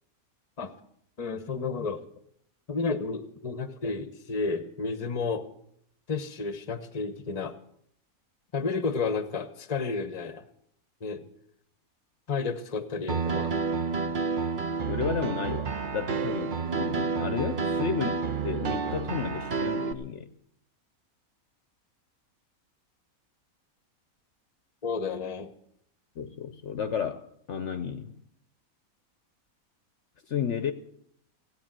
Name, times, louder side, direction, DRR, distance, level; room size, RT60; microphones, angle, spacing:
voice 1, 1.2-2.0 2.7-5.5 6.1-7.5 8.5-10.4 11.0-11.2 12.3-13.5 24.8-25.5, left 4 dB, 30° left, 11 dB, 0.9 m, -31 dB
Piano, 13.1-19.9, right 5 dB, 40° right, 0.9 m, -29 dB
voice 2, 14.9-20.3 26.2-28.2 30.3-30.7, left 7 dB, 60° left, 10 dB, 1.0 m, -32 dB
16.5 x 9.1 x 7.5 m, 0.70 s
omnidirectional pair, 1.5 m